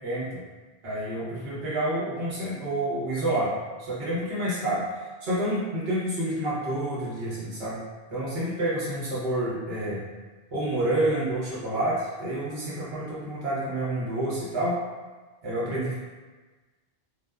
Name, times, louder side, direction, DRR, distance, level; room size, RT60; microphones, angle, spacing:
voice 1, 0.0-0.4 0.8-3.5 3.8-7.8 8.1-10.0 10.5-14.8 15.4-15.9, right 1 dB, 70° right, -9 dB, 1.2 m, -28 dB
2.5 x 2.4 x 2.3 m, 1.3 s
omnidirectional pair, 1.1 m